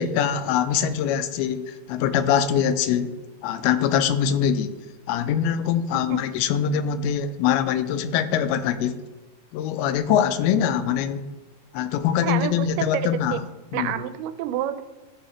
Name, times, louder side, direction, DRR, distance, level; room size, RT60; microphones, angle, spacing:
voice 1, 0.0-3.2 3.4-4.7 5.1-9.0 9.5-11.3 11.7-13.4 13.7-13.9, left 8 dB, 85° left, 11 dB, 2.5 m, -23 dB
voice 2, 12.2-13.4 13.7-14.8, right 12 dB, 90° right, 11 dB, 2.5 m, -28 dB
14.5 x 4.9 x 3.0 m, 1.1 s
omnidirectional pair, 4.4 m